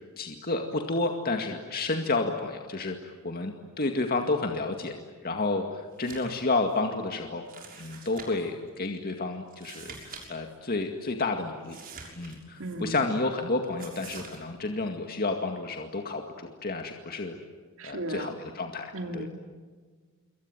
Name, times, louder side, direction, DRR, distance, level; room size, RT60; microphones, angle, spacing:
voice 1, 0.2-4.9 5.2-7.4 7.8-11.8 12.2-17.4 17.8-19.3, left 3 dB, 45° left, 4 dB, 2.2 m, -30 dB
sound 1, 5.9-6.4 6.7-6.8 7.5-8.5 9.5-10.3 10.5-10.6 11.6-12.8 13.8-14.4, right 5 dB, 45° right, 6.6 m, -45 dB
voice 2, 12.6-13.1 17.8-18.4 18.9-19.3, right 1 dB, 70° right, 5 dB, 2.9 m, -35 dB
27.5 x 24.0 x 9.2 m, 1.5 s
head